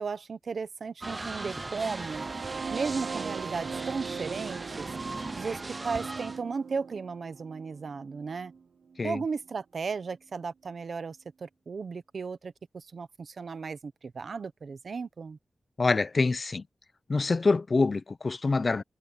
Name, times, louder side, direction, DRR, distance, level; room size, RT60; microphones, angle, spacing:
voice 1, 0.0-2.2 2.7-4.9 5.4-8.5 9.0-15.4, right 5 dB, 55° right, 1.0 m, -35 dB
sound 1, 1.0-6.4, right 2 dB, 25° right, 0.4 m, -38 dB
sound 2, 1.7-9.6, right 6 dB, 75° right, 0.6 m, -40 dB
voice 2, 15.8-16.6 17.1-18.8, left 3 dB, 35° left, 0.7 m, -25 dB
wide cardioid pair, 175°, 0 cm